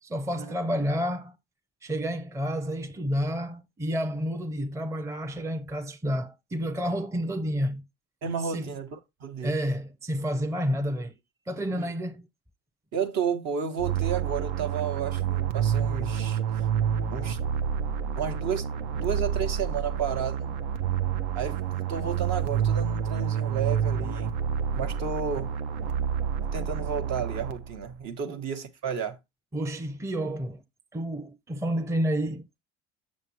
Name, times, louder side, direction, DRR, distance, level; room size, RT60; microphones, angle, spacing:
voice 1, 0.0-1.4 1.8-7.8 8.4-8.7 9.4-11.1 11.5-12.3 28.3-28.4 29.5-30.6 30.9-32.6, equal, 10° right, 0.6 m, -30 dB
voice 2, 8.2-9.5 11.7-11.9 12.9-16.7 17.1-17.4 18.2-20.5 21.3-24.3 24.7-25.5 26.5-29.2, right 6 dB, 55° right, 1.1 m, -32 dB
sound 1, 13.8-27.9, right 8 dB, 70° right, 0.7 m, -28 dB
7.2 x 6.3 x 2.9 m
hypercardioid pair, 65°, 33 cm